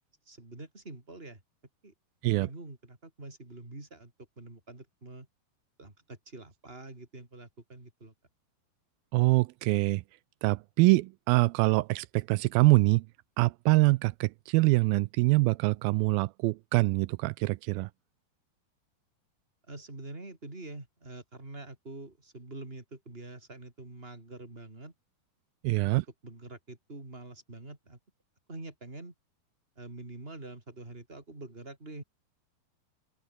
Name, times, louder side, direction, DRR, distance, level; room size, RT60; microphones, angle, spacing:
voice 1, 0.2-1.4 1.8-1.9 2.2-5.3 5.8-8.1 19.7-24.9 25.8-28.0 28.5-29.1 29.8-32.0, right 2 dB, 15° right, 4.6 m, -46 dB
voice 2, 9.1-10.0 10.4-13.0 13.4-17.9 25.6-26.0, right 22 dB, 80° right, 2.2 m, -24 dB
open air
omnidirectional pair, 4.6 m